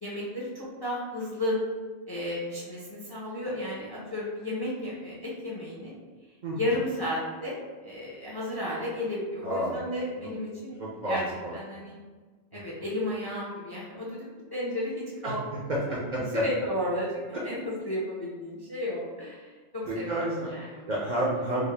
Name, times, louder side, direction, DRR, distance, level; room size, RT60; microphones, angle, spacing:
voice 1, 0.0-1.6 2.1-5.9 6.5-11.2 11.5-12.0 12.5-15.7 16.1-20.9, left 1 dB, 30° left, -6 dB, 0.4 m, -33 dB
voice 2, 9.4-9.8 10.8-11.6 15.2-15.3 15.7-16.4 19.8-20.5 20.9-21.6, right 1 dB, 55° right, -5 dB, 0.6 m, -30 dB
3.7 x 2.1 x 3.2 m, 1.4 s
omnidirectional pair, 1.2 m